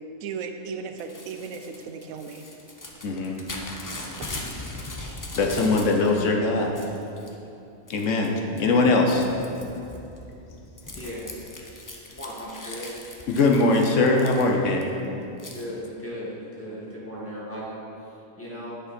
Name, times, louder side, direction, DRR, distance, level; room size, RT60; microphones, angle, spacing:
voice 1, 0.2-2.4 4.2-4.3, right 5 dB, 90° right, 6 dB, 1.0 m, -36 dB
Crumpling crinkling / Tearing, 1.0-6.2 6.5-7.3 7.9-8.3 8.6-14.8 15.4-15.6, left 2 dB, 30° left, 0.3 m, -40 dB
voice 2, 3.0-3.4 5.4-6.8 7.9-9.3 13.3-15.0, left 3 dB, 70° left, 2 dB, 1.0 m, -21 dB
voice 3, 10.9-11.3 12.1-13.0 15.5-18.8, equal, 10° left, -8 dB, 1.7 m, -37 dB
9.1 x 5.0 x 4.2 m, 2.8 s
omnidirectional pair, 1.4 m